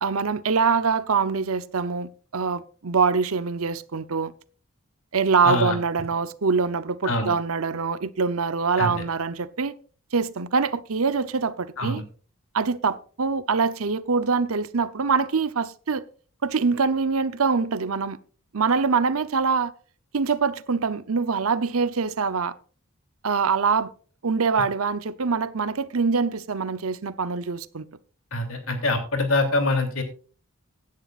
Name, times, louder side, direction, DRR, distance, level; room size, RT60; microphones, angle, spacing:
voice 1, 0.0-4.3 5.1-9.8 10.1-12.0 12.5-16.0 16.4-18.2 18.5-19.7 20.1-22.5 23.2-23.9 24.2-27.9, right 5 dB, 80° right, 0.8 m, -24 dB
voice 2, 5.4-5.8 7.0-7.3 8.8-8.9 11.8-12.0 28.3-30.0, left 2 dB, 70° left, 3.0 m, -24 dB
16.5 x 10.5 x 2.5 m
head